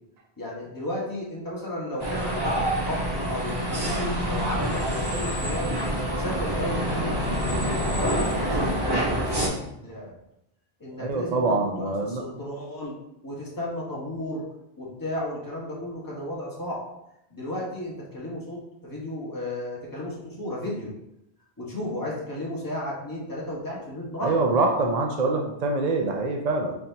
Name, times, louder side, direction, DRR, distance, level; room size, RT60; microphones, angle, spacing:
voice 1, 0.4-2.5 2.9-5.7 6.1-7.2 7.6-10.1 10.8-13.0 13.2-14.4 14.8-16.9 17.3-20.9 21.6-24.3, left 1 dB, 20° left, -5 dB, 1.3 m, -34 dB
sound 1, 2.0-9.5, equal, 25° right, 1.0 m, -26 dB
voice 2, 11.0-12.2 24.2-26.8, right 3 dB, 50° right, 2 dB, 0.5 m, -24 dB
4.3 x 4.2 x 2.7 m, 0.82 s
omnidirectional pair, 1.1 m